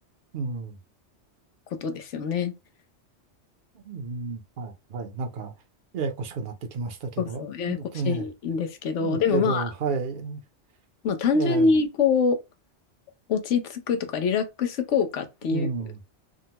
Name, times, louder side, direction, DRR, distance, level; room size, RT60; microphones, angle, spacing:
voice 1, 0.3-0.8 3.7-5.5 5.9-8.3 9.0-10.4 11.3-11.7 15.5-16.0, right 4 dB, 50° right, 0.8 m, -31 dB
voice 2, 1.7-2.5 7.2-7.8 8.1-9.7 11.0-12.4 13.3-15.7, left 5 dB, 80° left, 1.0 m, -25 dB
3.7 x 2.1 x 2.8 m
omnidirectional pair, 1.2 m